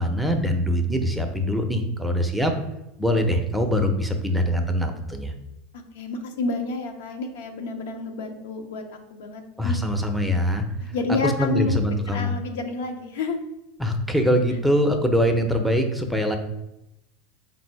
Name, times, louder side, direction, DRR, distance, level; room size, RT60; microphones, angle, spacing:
voice 1, 0.0-2.5 3.0-5.3 9.6-10.6 11.2-12.3 13.8-16.4, equal, ahead, 4 dB, 0.5 m, -23 dB
voice 2, 5.7-9.8 10.9-11.7 12.1-13.4, left 3 dB, 75° left, 5 dB, 0.6 m, -29 dB
3.6 x 2.6 x 4.5 m, 0.89 s
hypercardioid pair, 110°, 0 cm